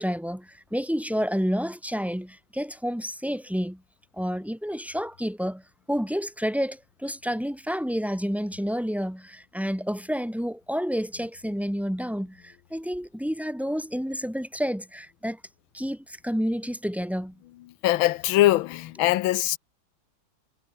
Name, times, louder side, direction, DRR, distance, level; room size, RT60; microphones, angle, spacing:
voice 1, 0.0-3.8 4.2-5.6 5.9-15.4 15.7-17.4, equal, ahead, 1.0 m, -29 dB
voice 2, 17.8-19.6, left 15 dB, 90° left, 1.5 m, -22 dB
omnidirectional pair, 2.2 m